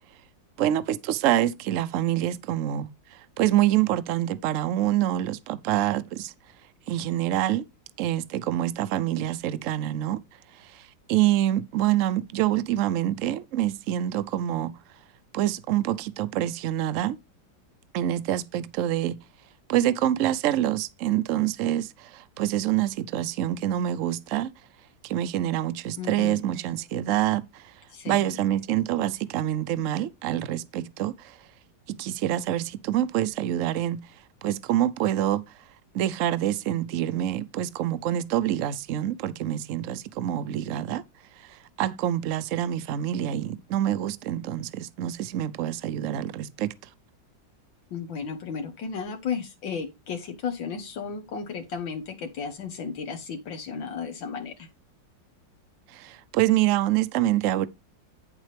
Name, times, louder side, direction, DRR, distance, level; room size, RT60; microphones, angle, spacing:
voice 1, 0.6-6.3 6.9-7.6 8.0-10.2 10.6-14.8 15.3-17.2 17.9-19.2 19.7-24.5 25.0-27.7 28.1-31.4 31.9-34.1 34.4-35.4 35.9-41.0 41.4-46.7 55.9-57.7, right 12 dB, 65° right, 0.8 m, -26 dB
voice 2, 26.0-26.4 27.9-28.4 47.9-54.5, left 6 dB, 85° left, 2.0 m, -34 dB
9.1 x 7.3 x 3.3 m
omnidirectional pair, 2.0 m